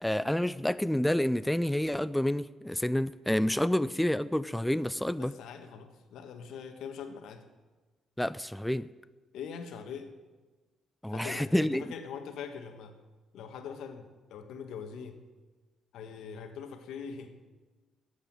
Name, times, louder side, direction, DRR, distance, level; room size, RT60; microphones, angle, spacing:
voice 1, 0.0-5.3 8.2-8.9 11.0-11.8, left 1 dB, 5° left, 15 dB, 0.4 m, -29 dB
voice 2, 5.2-7.4 9.3-10.1 11.1-13.0 13.3-15.2 15.9-17.3, left 6 dB, 80° left, 7 dB, 1.5 m, -42 dB
13.5 x 8.2 x 8.8 m, 1.3 s
cardioid pair, 90°, 0 cm